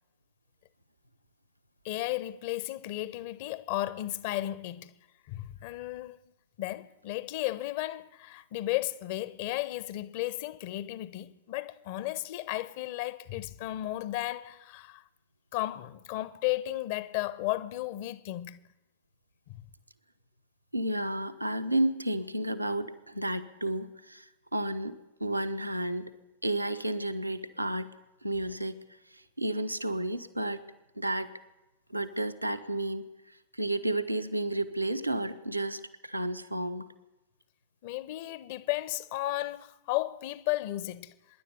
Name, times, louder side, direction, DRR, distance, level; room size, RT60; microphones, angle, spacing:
voice 1, 1.8-4.9 5.3-6.2 6.6-15.0 15.5-18.6 19.5-19.7 37.8-41.1, left 16 dB, 50° left, 1.1 m, -34 dB
voice 2, 20.7-24.2 24.5-26.1 26.4-27.9 28.2-28.8 29.4-30.6 31.0-31.3 31.9-33.0 33.5-36.9, right 1 dB, 85° right, 1.1 m, -31 dB
24.5 x 11.0 x 9.6 m
figure-of-eight pair, 90°, 0 cm